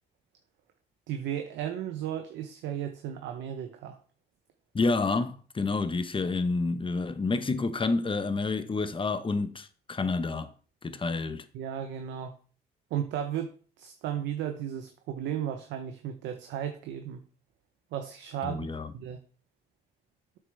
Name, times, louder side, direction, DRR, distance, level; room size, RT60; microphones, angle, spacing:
voice 1, 1.1-4.0 11.5-12.3 12.9-17.2 17.9-18.7 18.9-19.2, right 9 dB, 90° right, 0.8 m, -34 dB
voice 2, 4.7-10.5 10.8-11.4 18.4-18.9, left 3 dB, 30° left, 1.0 m, -29 dB
8.7 x 6.7 x 3.4 m
cardioid pair, 75°, 18 cm